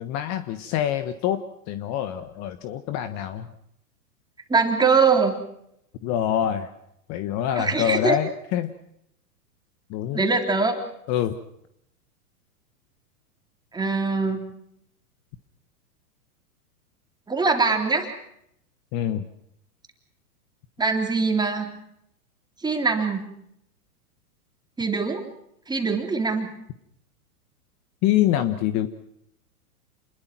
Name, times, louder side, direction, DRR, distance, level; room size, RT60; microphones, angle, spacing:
voice 1, 0.0-3.5 6.0-6.7 7.1-8.7 9.9-10.2 11.1-11.4 18.9-19.2 28.0-28.9, left 11 dB, 35° left, 11 dB, 1.4 m, -25 dB
voice 2, 4.5-5.3 7.6-8.2 10.1-10.8 13.7-14.5 17.3-18.1 20.8-21.7 22.6-23.2 24.8-25.3 25.7-26.5, right 4 dB, 10° right, 4 dB, 3.5 m, -22 dB
28.0 x 21.5 x 6.1 m, 0.75 s
hypercardioid pair, 130°, 46 cm